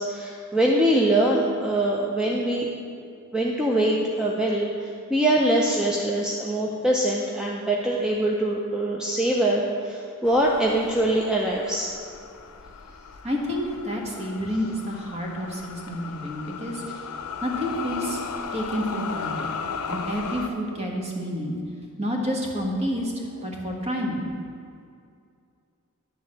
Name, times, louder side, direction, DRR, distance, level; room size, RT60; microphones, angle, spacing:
voice 1, 0.0-2.7 3.3-11.9, right 1 dB, 5° right, -3 dB, 0.5 m, -23 dB
sound 1, 10.2-20.5, left 5 dB, 80° left, 0.6 m, -36 dB
voice 2, 13.2-16.8 17.4-18.2 18.5-19.5 19.9-21.6 22.0-24.3, equal, 30° right, -1 dB, 1.3 m, -29 dB
10.5 x 3.7 x 7.3 m, 2.4 s
head